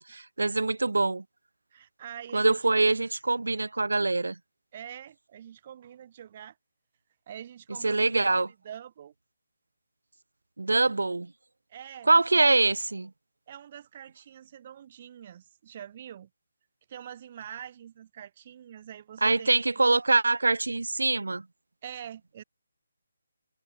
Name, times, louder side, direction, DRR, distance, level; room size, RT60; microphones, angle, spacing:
voice 1, 0.1-1.2 2.3-4.4 7.8-8.5 10.6-11.3 12.1-13.1 19.2-21.4, right 3 dB, 80° right, 0.6 m, -24 dB
voice 2, 1.7-2.6 4.7-6.6 7.3-9.1 11.7-12.1 13.5-16.3 16.9-19.9 21.8-22.4, right 9 dB, 40° right, 4.7 m, -45 dB
figure-of-eight pair, 150°, 0 cm